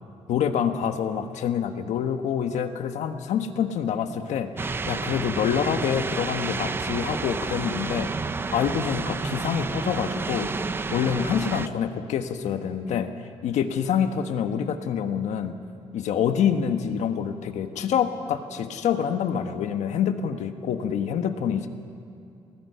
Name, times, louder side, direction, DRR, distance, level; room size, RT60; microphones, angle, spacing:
voice 1, 0.3-8.1 8.5-13.1 13.4-15.5 15.9-21.7, left 8 dB, 80° left, 7 dB, 1.3 m, -26 dB
sound 1, 4.6-11.7, right 4 dB, 20° right, 0.5 m, -30 dB
29.0 x 18.5 x 5.7 m, 2.6 s
cardioid pair, 165°, 12 cm